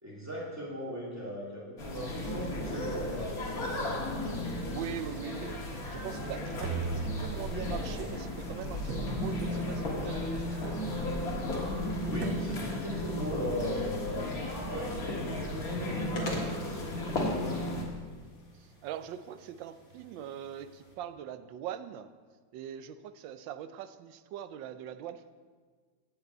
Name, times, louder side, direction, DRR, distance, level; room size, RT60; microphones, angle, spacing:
voice 1, 0.0-4.0 12.0-14.4 14.6-17.6, equal, 10° right, -6 dB, 3.0 m, -38 dB
sound 1, 1.8-17.8, left 1 dB, 50° left, 1.9 m, -34 dB
voice 2, 4.7-5.6 5.9-11.2 18.6-22.1 22.5-25.3, right 9 dB, 80° right, 11 dB, 1.3 m, -42 dB
sound 2, 6.6-7.8 8.9-9.7 10.6-11.3 12.2-12.9, right 4 dB, 55° right, 1.1 m, -39 dB
sound 3, 13.9-20.9, left 1 dB, 80° left, 2.5 m, -47 dB
8.8 x 6.0 x 8.1 m, 1.5 s
omnidirectional pair, 2.1 m